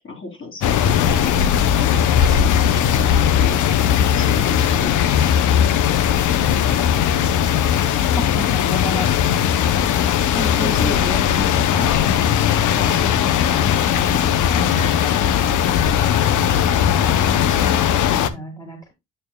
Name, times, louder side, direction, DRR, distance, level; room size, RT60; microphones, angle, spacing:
voice 1, 0.0-5.2 10.0-11.7, left 3 dB, 40° left, 1 dB, 3.1 m, -35 dB
sound 1, 0.6-18.3, left 9 dB, 80° left, 0.7 m, -18 dB
voice 2, 8.4-9.5 10.3-12.2 12.8-18.9, left 1 dB, 15° left, 2 dB, 1.9 m, -33 dB
8.8 x 6.7 x 2.3 m, 0.21 s
cardioid pair, 90°, 30 cm